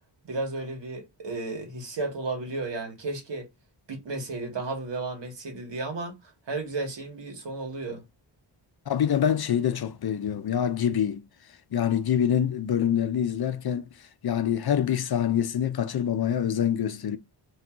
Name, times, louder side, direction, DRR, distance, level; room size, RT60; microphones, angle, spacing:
voice 1, 0.2-3.5 3.9-8.0, right 3 dB, 70° right, 1.7 m, -33 dB
voice 2, 8.9-11.2 11.7-13.9 14.2-17.2, left 9 dB, 55° left, 0.6 m, -25 dB
3.6 x 3.1 x 4.5 m
wide cardioid pair, 120°, 45 cm